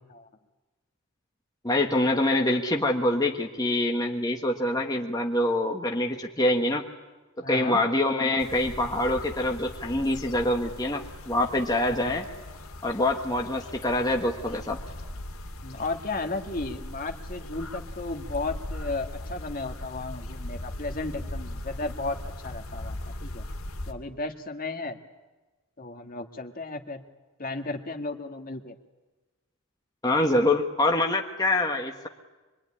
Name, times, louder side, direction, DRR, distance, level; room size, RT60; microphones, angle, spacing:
voice 1, 1.6-6.8 7.4-12.3 12.8-14.8 30.0-32.1, left 1 dB, 20° left, 1 dB, 1.6 m, -25 dB
voice 2, 7.4-7.8 11.8-12.2 15.6-23.4 23.9-25.0 25.8-27.0 27.4-28.7, left 3 dB, 40° left, 6 dB, 1.9 m, -34 dB
sound 1, 8.4-23.9, left 1 dB, 85° left, 2.5 m, -39 dB
25.5 x 22.5 x 10.0 m, 1.2 s
head